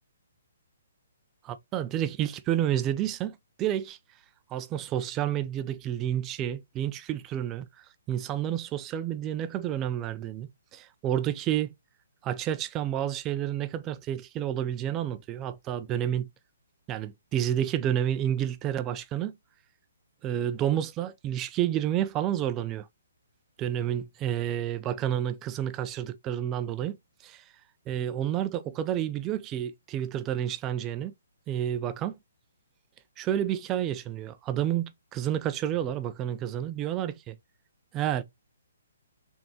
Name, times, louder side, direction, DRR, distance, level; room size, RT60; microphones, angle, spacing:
voice 1, 1.4-4.0 4.5-11.7 12.2-16.3 16.9-19.3 20.2-22.9 23.6-27.0 27.2-27.4 27.9-31.1 31.5-32.2 33.2-37.4 37.9-38.2, right 11 dB, 20° right, 0.4 m, -30 dB
3.8 x 3.5 x 3.0 m
hypercardioid pair, 140°, 0 cm